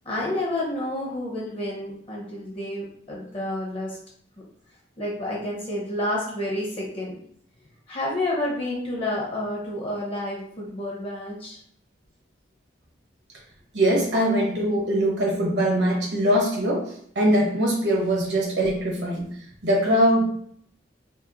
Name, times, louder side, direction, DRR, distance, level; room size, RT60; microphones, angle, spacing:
voice 1, 0.0-4.0 5.0-7.2 7.9-11.6, left 1 dB, 30° left, -3 dB, 0.6 m, -29 dB
voice 2, 13.7-16.9 17.1-19.3 19.6-20.2, equal, 70° right, -2 dB, 0.9 m, -22 dB
2.8 x 2.0 x 2.4 m, 0.63 s
head